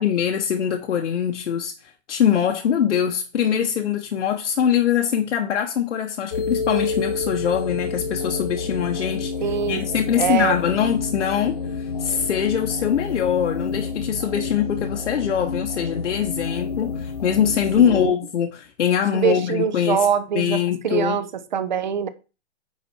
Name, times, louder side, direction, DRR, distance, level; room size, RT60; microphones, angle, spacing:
voice 1, 0.0-9.3 9.7-20.1 20.3-21.2, left 8 dB, 80° left, 1.1 m, -23 dB
sound 1, 6.3-18.1, left 4 dB, 35° left, 0.5 m, -29 dB
voice 2, 9.4-9.9 10.2-10.5 17.8-18.1 19.1-20.6 20.8-22.1, right 7 dB, 40° right, 0.7 m, -23 dB
9.4 x 4.2 x 4.2 m
hypercardioid pair, 180°, 35 cm